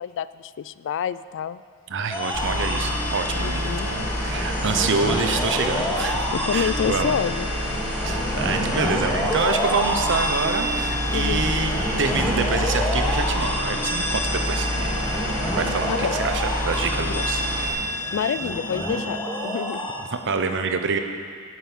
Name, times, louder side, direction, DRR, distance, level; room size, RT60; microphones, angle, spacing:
voice 1, 0.0-1.6 3.4-3.9 6.3-7.5 11.1-11.4 15.9-16.1 17.0-17.2 18.1-19.9, left 8 dB, 55° left, 16 dB, 0.3 m, -28 dB
voice 2, 1.9-7.1 8.0-15.0 15.6-17.4 20.1-21.0, right 4 dB, 55° right, 6 dB, 0.9 m, -27 dB
sound 1, 2.1-19.9, equal, 10° left, 2.2 m, -28 dB
sound 2, 2.3-17.7, left 1 dB, 85° left, 4.0 m, -28 dB
11.5 x 9.4 x 7.2 m, 2.1 s
head